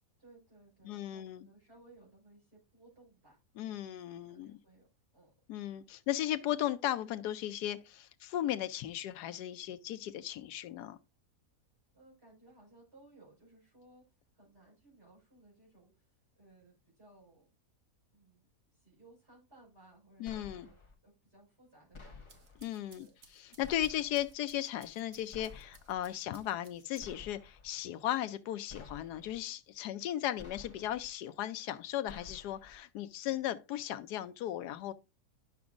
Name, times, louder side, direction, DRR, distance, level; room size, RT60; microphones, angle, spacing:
voice 1, 0.2-4.9 5.1-5.3 11.9-17.5 18.1-22.2 22.9-23.2, right 2 dB, 40° right, 5.4 m, -61 dB
voice 2, 0.8-1.5 3.6-4.6 5.5-11.0 20.2-20.7 22.6-23.1 23.3-34.9, left 12 dB, 85° left, 1.2 m, -36 dB
sound 1, 20.3-20.9 21.9-22.6 23.6-24.3 25.3-26.0 27.0-27.7 28.7-29.4 30.4-31.1 32.1-32.8, left 3 dB, 20° left, 1.0 m, -52 dB
sound 2, 22.1-27.4, right 4 dB, 60° right, 1.5 m, -62 dB
10.5 x 6.0 x 2.5 m
omnidirectional pair, 1.7 m